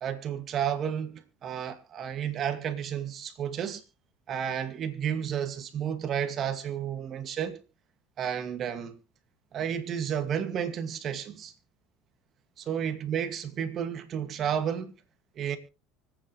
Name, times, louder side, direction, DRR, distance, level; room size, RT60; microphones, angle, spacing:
voice 1, 0.0-3.8 4.3-7.6 8.2-9.0 9.5-11.5 12.6-14.9 15.4-15.6, right 8 dB, 45° right, 2.2 m, -32 dB
25.0 x 9.0 x 3.3 m
supercardioid pair, 95°, 0 cm